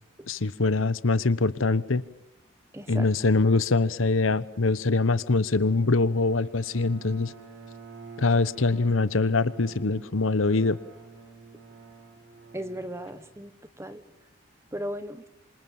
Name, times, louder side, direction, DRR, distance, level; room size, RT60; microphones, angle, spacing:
voice 1, 0.3-2.0 2.9-7.3 8.2-10.8, left 3 dB, 85° left, 16 dB, 1.0 m, -23 dB
voice 2, 2.7-3.1 12.5-13.5 13.8-14.0 14.7-15.2, equal, 15° right, 11 dB, 1.3 m, -36 dB
Bowed string instrument, 5.1-13.5, right 4 dB, 80° right, 7.2 m, -48 dB
27.0 x 26.5 x 7.2 m, 0.84 s
head